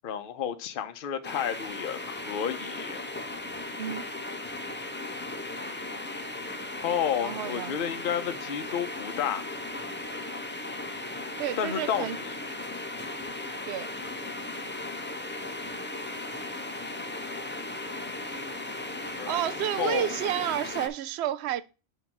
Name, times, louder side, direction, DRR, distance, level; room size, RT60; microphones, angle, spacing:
voice 1, 0.0-3.0 6.8-9.4 11.6-12.2 19.2-19.4 19.8-20.1, left 8 dB, 50° left, 0.8 m, -31 dB
sound 1, 1.2-20.9, left 2 dB, 15° left, 0.4 m, -37 dB
voice 2, 7.2-7.8 11.4-12.2 13.7-13.9 19.3-21.6, right 11 dB, 65° right, 0.8 m, -30 dB
6.4 x 3.1 x 5.8 m
omnidirectional pair, 1.3 m